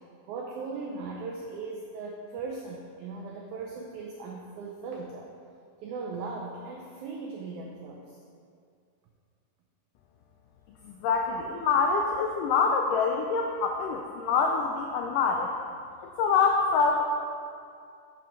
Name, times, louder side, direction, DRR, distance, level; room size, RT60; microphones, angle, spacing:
voice 1, 0.3-5.3 5.8-8.2, right 4 dB, 85° right, 0 dB, 1.7 m, -38 dB
voice 2, 10.8-15.5 16.2-17.0, left 5 dB, 90° left, 2 dB, 1.8 m, -25 dB
7.4 x 5.8 x 5.3 m, 2.3 s
omnidirectional pair, 4.2 m